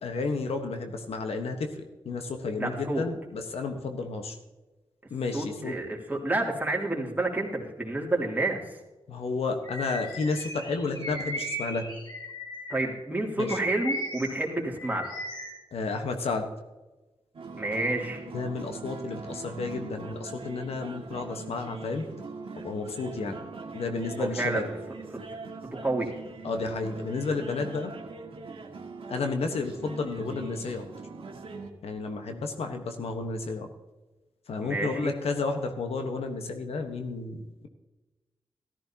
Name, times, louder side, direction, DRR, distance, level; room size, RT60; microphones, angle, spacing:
voice 1, 0.0-4.4 5.1-5.8 9.1-11.9 13.4-13.6 15.7-16.5 18.3-22.1 22.6-23.4 23.7-24.6 26.4-27.9 29.1-30.8 31.8-33.7 34.5-37.7, left 3 dB, 80° left, 5 dB, 1.3 m, -32 dB
voice 2, 2.6-3.0 5.3-8.8 12.7-15.1 17.5-18.2 24.2-24.7 25.7-26.1 34.6-35.2, right 2 dB, 15° right, -1 dB, 2.9 m, -29 dB
Bird vocalization bird call bird song, 9.6-13.0 13.4-15.6, equal, 45° left, 4.7 m, -37 dB
sound 1, 17.3-31.7, right 4 dB, 65° right, 1.6 m, -42 dB
14.0 x 13.5 x 2.9 m, 1.1 s
cardioid pair, 55°, 10 cm